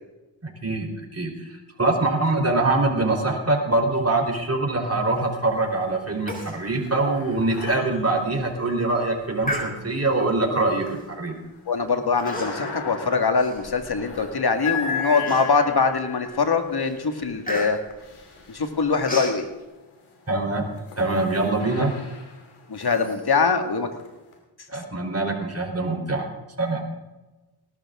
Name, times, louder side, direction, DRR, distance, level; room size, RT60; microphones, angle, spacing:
voice 1, 0.4-0.9 1.1-10.9 11.2-11.3 20.3-20.6 21.0-21.9 24.7-26.3 26.6-26.8, right 2 dB, 30° right, 3 dB, 4.0 m, -24 dB
sound 1, 5.0-5.7 6.1-19.2 19.9-24.3, left 5 dB, 85° left, 2.9 m, -38 dB
Human voice, 6.3-6.6 6.9-7.0 7.5-7.6 8.2-8.5 9.4-10.1 10.9-11.1 12.2-12.8 13.1-14.2 14.7-14.8 15.2-15.8 16.3-16.5 16.8-19.4, left 1 dB, 15° left, 4.3 m, -33 dB
voice 2, 11.7-17.8 18.5-19.5 22.7-23.9, left 4 dB, 50° left, 6 dB, 2.1 m, -23 dB
18.5 x 12.0 x 3.8 m, 1.1 s
cardioid pair, 50°, 48 cm